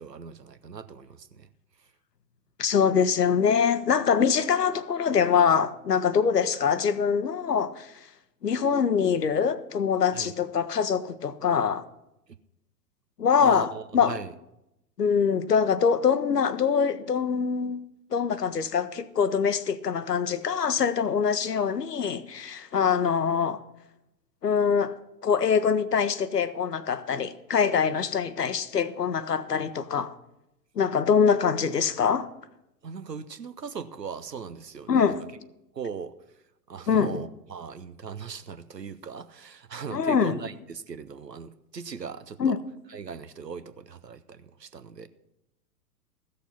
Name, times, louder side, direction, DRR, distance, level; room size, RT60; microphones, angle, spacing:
voice 1, 0.0-1.5 10.1-10.3 13.4-14.3 32.8-35.2 35.7-36.1 36.7-42.5 42.9-45.1, right 6 dB, 85° right, 0.8 m, -39 dB
voice 2, 2.6-7.9 8.4-11.8 13.2-14.1 15.0-17.8 18.1-23.6 24.4-25.0 25.2-30.1 30.8-32.3 34.9-35.2 36.9-37.1 39.9-40.4 42.4-42.6, left 6 dB, 80° left, 0.9 m, -24 dB
14.5 x 6.7 x 5.7 m
figure-of-eight pair, 100°, 48 cm